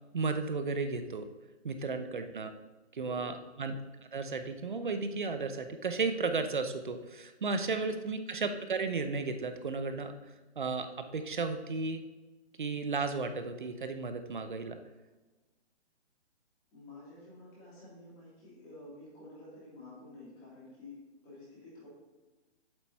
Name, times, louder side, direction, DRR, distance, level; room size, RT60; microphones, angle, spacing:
voice 1, 0.1-1.3 1.6-2.5 2.9-3.7 4.1-10.1 10.6-10.9 11.1-12.0 12.6-14.8, right 4 dB, 45° right, 8 dB, 0.8 m, -34 dB
voice 2, 1.8-2.1 3.0-3.4 7.7-7.9 16.7-21.9, left 2 dB, 15° left, -8 dB, 2.9 m, -51 dB
8.1 x 7.7 x 4.2 m, 1.2 s
hypercardioid pair, 175°, 35 cm